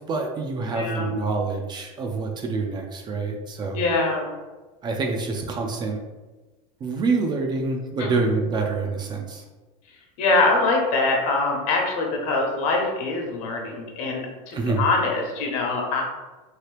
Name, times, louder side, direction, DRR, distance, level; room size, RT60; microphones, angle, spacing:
voice 1, 0.0-3.8 4.8-6.0 6.8-9.4 14.5-14.9, right 3 dB, 25° right, 2 dB, 0.3 m, -26 dB
voice 2, 0.7-1.1 3.7-4.3 8.0-8.1 10.2-16.0, left 3 dB, 65° left, 0 dB, 1.0 m, -23 dB
2.9 x 2.7 x 3.2 m, 1.2 s
supercardioid pair, 135°, 19 cm